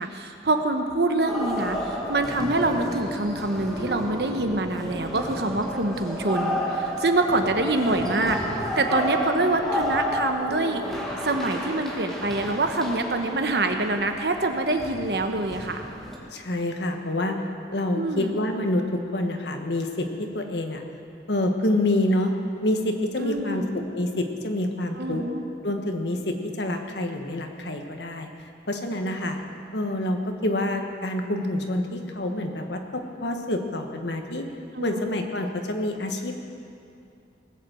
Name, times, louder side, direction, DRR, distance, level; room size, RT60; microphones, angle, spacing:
voice 1, 0.0-8.4 8.8-10.8 11.2-15.8 17.9-18.3 23.2-23.7 25.0-25.5 34.7-35.1, right 2 dB, 65° right, 5 dB, 1.0 m, -25 dB
sound 1, 1.3-16.2, equal, ahead, 1.7 m, -31 dB
voice 2, 16.3-17.4 17.7-20.8 21.3-22.3 22.6-23.6 23.9-25.2 25.6-28.3 28.7-29.4 29.7-34.5 34.8-36.3, left 1 dB, 75° left, 4 dB, 1.4 m, -27 dB
19.0 x 8.1 x 7.6 m, 2.5 s
head